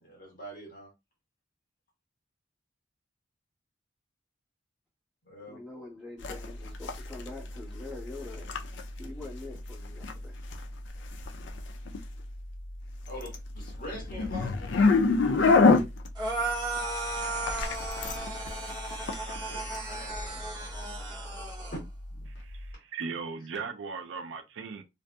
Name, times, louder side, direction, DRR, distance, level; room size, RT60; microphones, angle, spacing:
voice 1, 0.0-0.9 5.3-5.6 13.0-14.8 19.2-20.7 21.7-21.8, equal, 45° left, 1.3 m, -44 dB
voice 2, 5.5-8.5 9.0-10.3, left 2 dB, 5° right, 1.3 m, -44 dB
sound 1, 6.2-22.7, left 3 dB, 65° left, 0.4 m, -30 dB
sound 2, 16.2-21.8, right 2 dB, 20° right, 0.8 m, -35 dB
voice 3, 22.8-24.8, right 5 dB, 75° right, 0.4 m, -37 dB
2.6 x 2.4 x 2.3 m
head